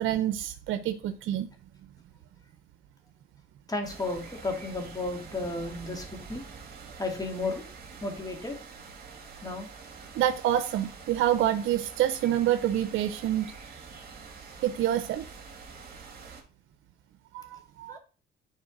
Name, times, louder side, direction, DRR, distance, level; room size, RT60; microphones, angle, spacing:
voice 1, 0.0-1.5 10.2-13.5 14.6-15.2 17.3-18.0, right 12 dB, 80° right, 0.6 m, -27 dB
voice 2, 3.7-6.4 7.0-7.6 8.0-8.6 9.4-9.7 17.9-18.0, left 2 dB, 20° left, 2.3 m, -33 dB
sound 1, 3.8-16.4, right 5 dB, 50° right, 2.7 m, -46 dB
10.0 x 4.2 x 3.9 m
cardioid pair, 90°, 20 cm